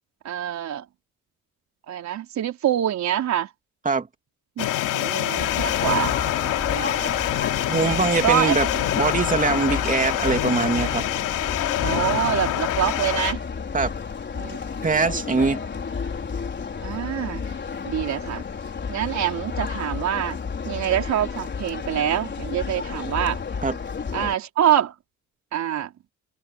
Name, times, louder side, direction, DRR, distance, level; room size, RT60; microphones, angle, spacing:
voice 1, 0.2-0.9 1.9-3.5 4.6-6.1 6.7-7.1 8.2-8.6 11.8-13.4 14.4-15.2 16.8-17.5 17.8-18.4 18.9-20.4 20.6-23.4 24.1-24.9 25.5-25.9, right 10 dB, 60° right, 4.4 m, -25 dB
sound 1, 4.6-13.3, left 13 dB, 75° left, 3.2 m, -26 dB
sound 2, 5.3-24.4, left 5 dB, 35° left, 4.7 m, -31 dB
voice 2, 7.7-8.7 8.9-11.0 13.7-13.9 14.8-15.6 23.6-23.7, right 4 dB, 25° right, 3.0 m, -22 dB
cardioid pair, 90°, 31 cm